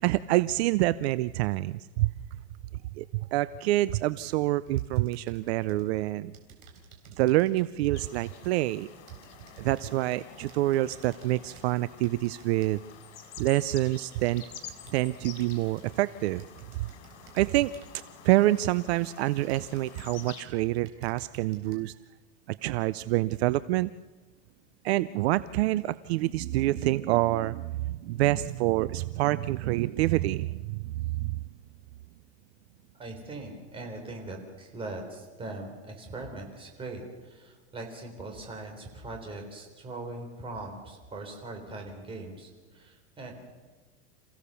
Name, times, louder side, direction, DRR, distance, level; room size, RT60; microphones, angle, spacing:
voice 1, 0.0-2.1 3.0-3.1 3.3-6.3 7.2-8.9 9.6-12.8 13.4-14.4 14.9-16.4 16.8-16.9 17.3-17.7 18.2-21.9 22.5-23.9 24.8-31.4, right 17 dB, 65° right, 16 dB, 0.6 m, -27 dB
sound 1, 4.7-5.9 6.3-13.1 13.6-15.1 15.4-16.0 16.4-18.1 18.7-18.8 19.4-20.3 20.7-21.8, right 5 dB, 40° right, 3.9 m, -54 dB
sound 2, 7.9-20.4, left 7 dB, 90° left, 3.9 m, -49 dB
voice 2, 32.9-43.4, right 2 dB, 15° right, 2 dB, 3.8 m, -41 dB
28.0 x 16.0 x 6.9 m, 1.3 s
supercardioid pair, 170°, 35 cm